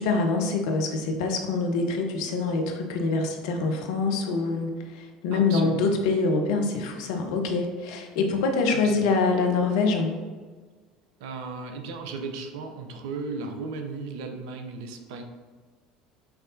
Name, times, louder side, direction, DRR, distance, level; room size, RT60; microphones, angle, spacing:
voice 1, 0.0-10.1, left 3 dB, 70° left, 3 dB, 0.6 m, -25 dB
voice 2, 5.3-6.0 8.7-9.1 11.2-15.2, right 4 dB, 70° right, 5 dB, 0.5 m, -36 dB
5.7 x 3.2 x 2.5 m, 1.5 s
hypercardioid pair, 70°, 3 cm